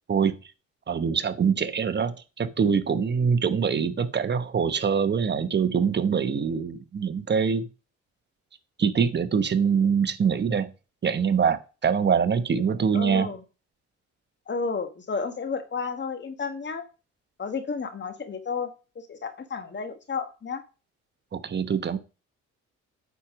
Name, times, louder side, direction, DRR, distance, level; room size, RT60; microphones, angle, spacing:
voice 1, 0.9-7.7 8.8-10.7 11.0-13.3 21.3-22.0, right 6 dB, 35° right, 1.1 m, -24 dB
voice 2, 12.9-13.4 14.5-16.9 17.4-18.7 18.9-20.6, left 5 dB, 35° left, 1.5 m, -32 dB
8.4 x 4.5 x 5.2 m
cardioid pair, 90°, 30 cm